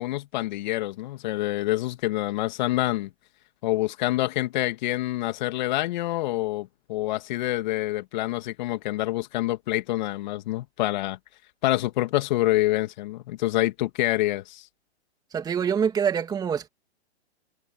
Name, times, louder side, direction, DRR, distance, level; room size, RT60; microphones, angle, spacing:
voice 1, 0.0-3.1 3.6-11.2 11.6-14.7, left 17 dB, 40° left, 2.3 m, -26 dB
voice 2, 15.3-16.7, right 7 dB, 10° right, 2.4 m, -25 dB
hypercardioid pair, 140°, 34 cm